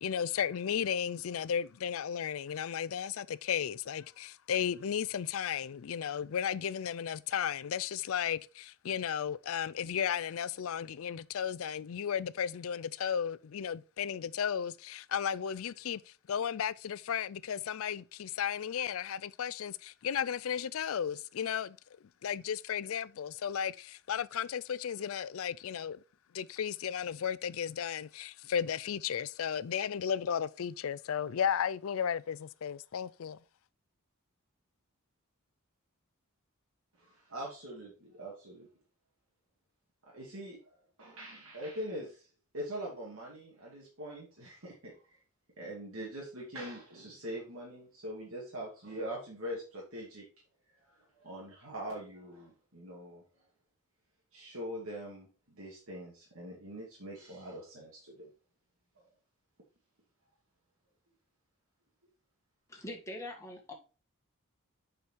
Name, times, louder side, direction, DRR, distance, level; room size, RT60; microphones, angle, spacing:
voice 1, 0.0-21.8 22.2-26.0 26.3-33.4, left 8 dB, 70° left, 0.4 m, -34 dB
voice 2, 37.0-38.7 40.0-40.7 41.0-42.3 42.5-45.2 45.6-50.2 50.8-53.2 54.3-55.3 55.6-58.3, equal, 70° right, 2.4 m, -43 dB
voice 3, 62.7-63.7, left 1 dB, 15° left, 1.7 m, -43 dB
7.0 x 5.0 x 4.5 m
head